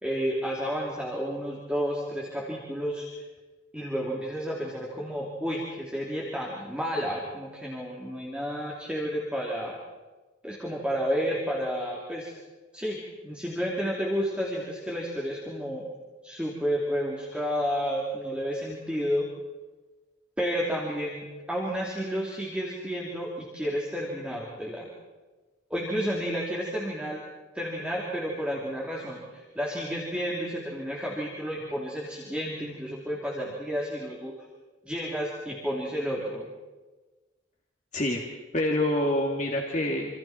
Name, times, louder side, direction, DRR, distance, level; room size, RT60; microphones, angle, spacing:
voice 1, 0.0-3.2 3.7-9.8 10.4-12.3 12.7-13.0 13.2-15.8 16.2-19.3 20.4-24.9 25.7-27.2 27.5-34.3 34.8-36.5, equal, 5° right, -4 dB, 3.3 m, -31 dB
voice 2, 37.9-38.2 38.5-40.2, left 1 dB, 40° left, -1 dB, 2.4 m, -26 dB
27.5 x 27.5 x 4.5 m, 1.2 s
head